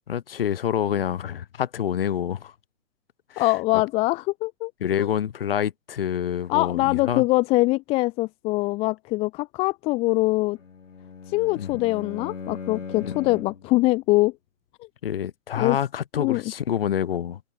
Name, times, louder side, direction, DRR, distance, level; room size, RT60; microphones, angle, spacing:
voice 1, 0.1-2.5 3.3-3.5 4.8-7.2 11.6-11.7 13.0-13.1 15.0-17.4, left 9 dB, 45° left, 3.3 m, -27 dB
voice 2, 3.4-4.7 5.0-5.1 6.5-10.6 11.3-14.3 15.6-15.8 16.1-16.4, left 21 dB, 15° left, 1.4 m, -23 dB
Bowed string instrument, 10.5-13.7, left 5 dB, 70° left, 2.6 m, -38 dB
figure-of-eight pair, 140°, 39 cm